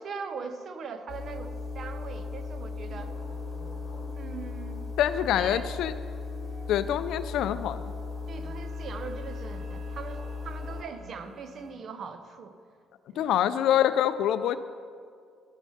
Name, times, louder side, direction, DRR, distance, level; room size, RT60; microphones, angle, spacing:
voice 1, 0.0-3.1 4.1-5.8 8.3-12.6 13.1-13.4, right 5 dB, 50° right, 9 dB, 0.8 m, -41 dB
sound 1, 1.1-10.8, left 4 dB, 50° left, 2.3 m, -37 dB
sound 2, 2.8-11.7, right 3 dB, 80° right, 2.7 m, -53 dB
voice 2, 5.0-5.9 6.7-7.8 13.2-14.6, left 11 dB, 80° left, 13 dB, 0.4 m, -25 dB
12.0 x 7.1 x 5.8 m, 2.2 s
cardioid pair, 130°, 0 cm